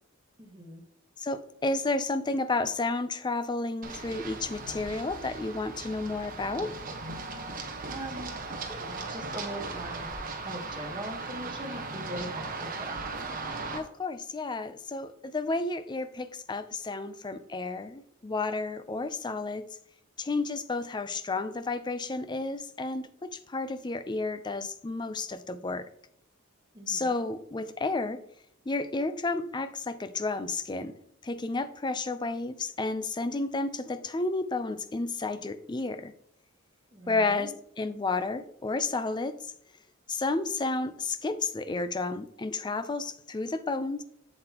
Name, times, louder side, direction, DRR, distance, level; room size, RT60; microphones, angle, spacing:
voice 1, 0.4-0.8 7.9-10.1 10.4-13.0 26.7-27.1 36.9-37.5, right 1 dB, 20° right, 1 dB, 1.3 m, -41 dB
voice 2, 1.2-6.7 13.7-19.6 20.2-25.9 26.9-28.2 28.7-30.9 31.2-36.1 37.1-39.5 40.1-44.0, left 3 dB, 20° left, 11 dB, 0.5 m, -31 dB
Run, 3.8-13.8, right 3 dB, 45° right, 1.2 m, -38 dB
7.8 x 7.5 x 2.9 m, 0.67 s
head